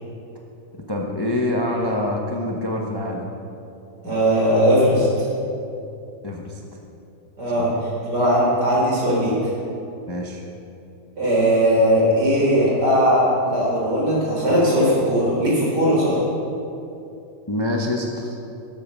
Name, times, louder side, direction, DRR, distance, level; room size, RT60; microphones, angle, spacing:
voice 1, 0.7-3.2 6.2-6.6 10.1-10.4 17.5-18.4, left 1 dB, 20° left, 0 dB, 0.6 m, -25 dB
voice 2, 4.0-5.1 7.4-7.7 8.0-9.3 11.2-16.2, equal, 70° right, -6 dB, 4.2 m, -18 dB
12.5 x 7.7 x 6.5 m, 2.7 s
omnidirectional pair, 1.9 m